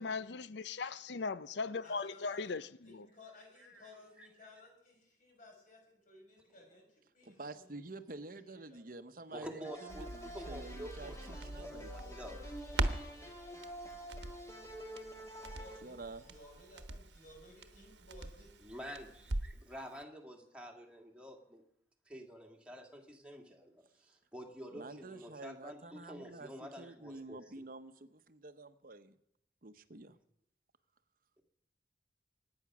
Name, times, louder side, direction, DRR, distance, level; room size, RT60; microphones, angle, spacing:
voice 1, 0.0-3.1, left 4 dB, 75° left, 0.6 m, -39 dB
voice 2, 1.6-7.8 8.2-8.8 15.4-18.5, left 1 dB, 50° left, 5.9 m, -58 dB
voice 3, 3.6-4.5 7.2-7.3 9.3-12.4 18.6-21.6 22.1-27.6, equal, 5° right, 2.0 m, -49 dB
voice 4, 7.2-12.2 15.8-16.4 24.7-29.2 29.6-30.2, right 2 dB, 50° right, 0.9 m, -49 dB
sound 1, 9.6-16.6, equal, 15° left, 2.0 m, -49 dB
Crackle, 9.9-19.7 20.0-20.1, right 2 dB, 80° right, 1.1 m, -42 dB
24.5 x 9.7 x 6.1 m
head